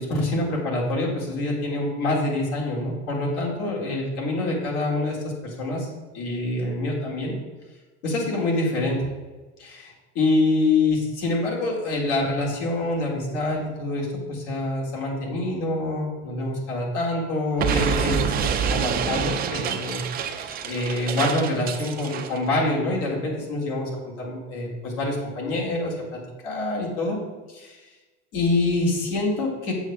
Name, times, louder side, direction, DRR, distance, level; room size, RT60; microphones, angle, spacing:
voice 1, 0.0-5.9 6.1-7.3 8.0-9.1 9.6-18.3 18.7-27.2 27.5-27.8 28.3-29.7, left 2 dB, 70° left, -3 dB, 2.0 m, -26 dB
Explosion, 17.6-22.4, right 7 dB, 25° right, 0.4 m, -27 dB
7.7 x 5.9 x 2.3 m, 1.3 s
supercardioid pair, 105°, 36 cm